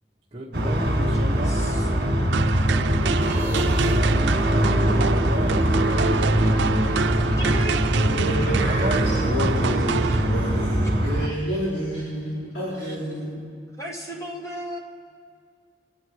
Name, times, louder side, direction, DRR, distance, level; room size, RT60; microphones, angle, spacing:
voice 1, 0.3-2.1 3.0-4.5 5.0-5.8 8.7-9.8, right 1 dB, 25° right, -5 dB, 1.1 m, -34 dB
sound 1, 0.5-11.3, right 1 dB, 60° right, 1.6 m, -22 dB
voice 2, 1.3-1.9 7.4-7.9 8.3-8.7 9.1-10.2 12.7-12.9 13.8-14.8, right 1 dB, 15° left, 0 dB, 1.8 m, -36 dB
sound 2, 2.3-10.7, right 4 dB, 80° right, 0.5 m, -27 dB
sound 3, 3.2-4.1 5.2-8.3, left 1 dB, 30° left, 1.9 m, -37 dB
voice 3, 8.0-13.5, equal, 65° left, -11 dB, 5.3 m, -29 dB
26.0 x 9.8 x 4.8 m, 2.2 s
head